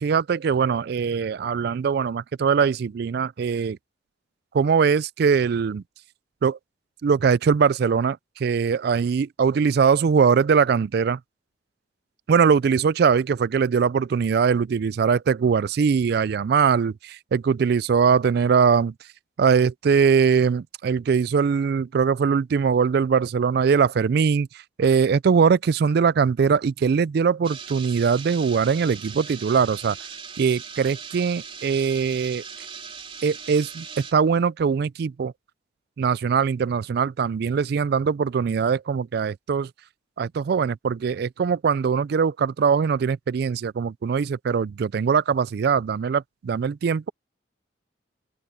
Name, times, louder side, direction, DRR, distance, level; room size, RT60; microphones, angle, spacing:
voice 1, 0.0-3.8 4.5-5.8 6.4-6.6 7.0-11.2 12.3-18.9 19.4-24.5 24.8-30.0 30.4-32.4 33.2-33.9 34.1-35.3 36.0-39.7 40.2-47.1, right 6 dB, 55° right, 0.3 m, -21 dB
sound 1, 27.4-34.1, right 6 dB, 30° right, 3.9 m, -39 dB
open air
head